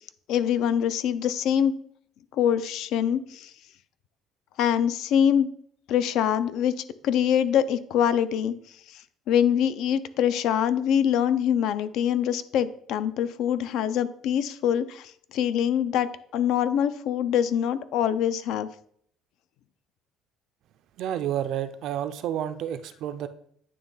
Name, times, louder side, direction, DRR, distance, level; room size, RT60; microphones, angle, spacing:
voice 1, 0.3-1.7 2.3-3.5 4.6-5.5 5.9-6.7 7.0-18.7, left 9 dB, 60° left, 13 dB, 0.4 m, -24 dB
voice 2, 21.0-23.3, right 10 dB, 55° right, 11 dB, 0.5 m, -30 dB
9.3 x 3.1 x 5.5 m, 0.64 s
cardioid pair, 170°, 0 cm